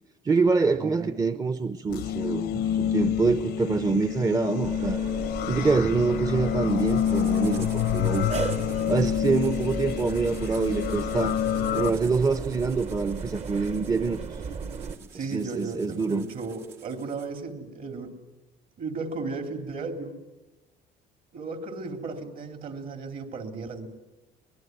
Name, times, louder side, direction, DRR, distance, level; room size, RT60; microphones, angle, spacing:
voice 1, 0.2-5.0 5.5-8.3 8.9-11.4 11.7-14.2 15.3-16.3, right 4 dB, 20° right, 12 dB, 0.8 m, -25 dB
voice 2, 0.8-1.2 5.7-5.9 15.1-18.2 18.8-20.2 21.3-23.9, right 4 dB, 60° right, 7 dB, 3.4 m, -35 dB
sound 1, 1.9-11.9, left 11 dB, 75° left, 0.8 m, -28 dB
sound 2, 4.6-15.0, right 5 dB, 40° right, 1.2 m, -35 dB
sound 3, 6.7-17.4, right 6 dB, 80° right, 3.0 m, -48 dB
24.0 x 20.5 x 9.3 m, 1.1 s
cardioid pair, 110°, 17 cm